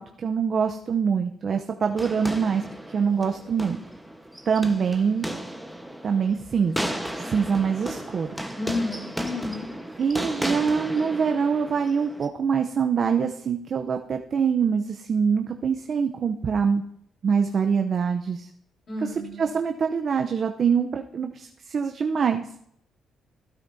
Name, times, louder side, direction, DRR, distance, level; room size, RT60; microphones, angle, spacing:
voice 1, 0.0-2.6 2.9-3.8 4.5-5.3 6.0-6.8 7.2-8.3 10.0-16.8 17.2-18.5 19.0-22.5, right 6 dB, 50° right, 5 dB, 0.6 m, -24 dB
sound 1, 2.0-12.3, right 1 dB, ahead, 1.1 m, -34 dB
voice 2, 8.5-9.6 18.9-19.5, left 2 dB, 45° left, 0 dB, 4.1 m, -31 dB
15.5 x 9.2 x 2.7 m, 0.70 s
cardioid pair, 90°, 0 cm